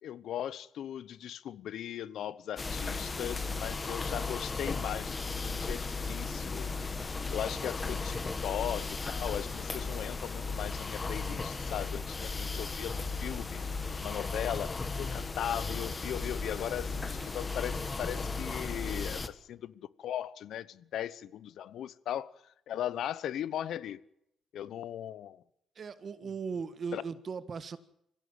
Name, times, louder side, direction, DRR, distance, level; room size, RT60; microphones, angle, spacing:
voice 1, 0.0-6.7 7.3-13.6 14.0-22.3 22.7-24.0 24.5-25.4 26.9-27.0, left 10 dB, 75° left, 1.0 m, -38 dB
sound 1, 2.6-19.3, left 4 dB, 30° left, 1.8 m, -35 dB
voice 2, 25.8-27.8, right 5 dB, 45° right, 1.7 m, -38 dB
25.0 x 16.5 x 9.1 m
cardioid pair, 90°, 0 cm